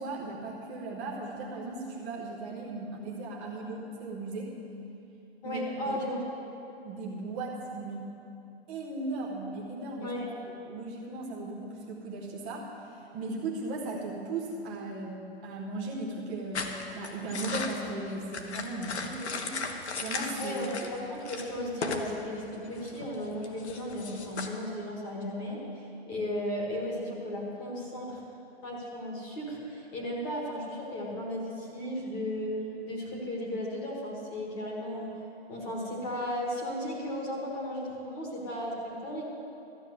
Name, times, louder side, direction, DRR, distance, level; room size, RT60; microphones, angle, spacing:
voice 1, 0.0-4.5 5.4-6.0 6.8-8.0 8.7-10.1 10.7-12.7 13.1-19.7 20.0-20.6, right 2 dB, 10° right, -3 dB, 0.7 m, -37 dB
voice 2, 5.4-6.2 10.0-10.3 20.4-28.2 28.6-32.6 32.8-35.1 35.5-39.2, left 1 dB, 15° left, -3 dB, 1.4 m, -35 dB
sound 1, 16.5-21.0 21.2-22.1 22.4-24.5, left 4 dB, 85° left, 1.5 m, -37 dB
13.0 x 7.1 x 9.2 m, 2.9 s
hypercardioid pair, 180°, 32 cm